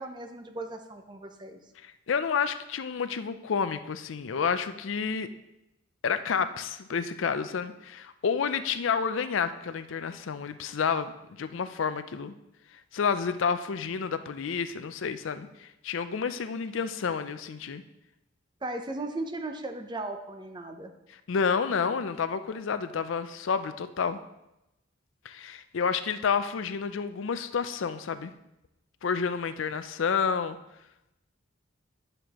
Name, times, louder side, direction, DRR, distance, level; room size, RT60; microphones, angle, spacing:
voice 1, 0.0-1.6 18.6-20.9, right 2 dB, 25° right, 6 dB, 0.6 m, -37 dB
voice 2, 1.8-5.3 6.0-12.4 12.7-17.8 21.1-24.2 25.2-28.3 29.0-30.6, left 6 dB, 75° left, 11 dB, 0.5 m, -30 dB
9.3 x 6.6 x 3.0 m, 0.90 s
head